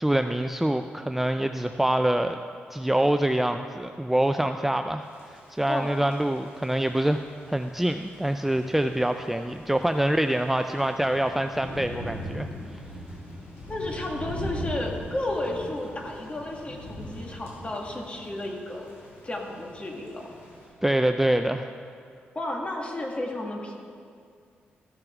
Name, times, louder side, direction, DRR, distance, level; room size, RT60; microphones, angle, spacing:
voice 1, 0.0-2.4 2.7-12.8 20.8-21.7, right 1 dB, 5° right, 7 dB, 0.3 m, -25 dB
Thunder / Rain, 5.0-20.7, equal, 85° left, 2.7 m, -41 dB
voice 2, 13.7-18.9 19.2-20.3 22.4-23.7, left 1 dB, 30° left, 0 dB, 1.7 m, -32 dB
14.5 x 6.7 x 3.6 m, 2.2 s
cardioid pair, 65°, 4 cm